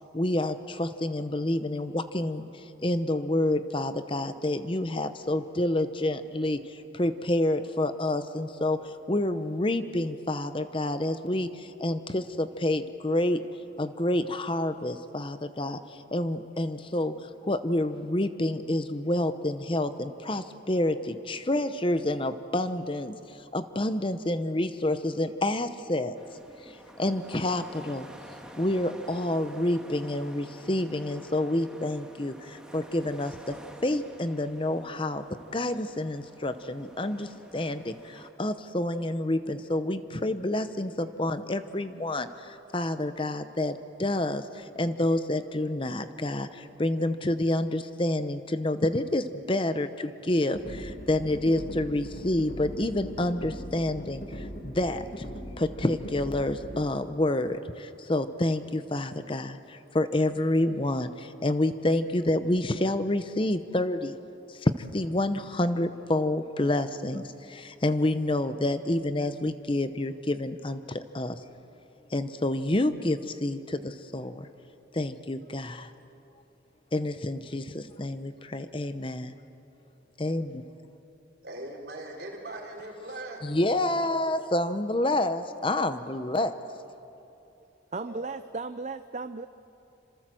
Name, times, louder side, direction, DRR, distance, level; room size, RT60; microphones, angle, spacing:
voice 1, 0.1-13.4 13.8-26.2 26.6-28.1 28.6-35.3 35.5-55.2 55.6-64.2 64.5-71.4 72.1-74.5 74.9-75.9 76.9-79.3 80.2-80.6 83.4-86.6, left 1 dB, 25° left, 10 dB, 0.8 m, -28 dB
sound 1, 26.1-38.3, equal, 5° right, 1.8 m, -49 dB
sound 2, 50.5-56.8, equal, 45° left, 1.9 m, -40 dB
voice 2, 81.4-83.4 87.9-88.3, right 1 dB, 55° right, -1 dB, 4.6 m, -40 dB
voice 3, 87.9-89.5, right 3 dB, 40° right, 11 dB, 0.6 m, -35 dB
28.5 x 26.5 x 7.7 m, 2.8 s
head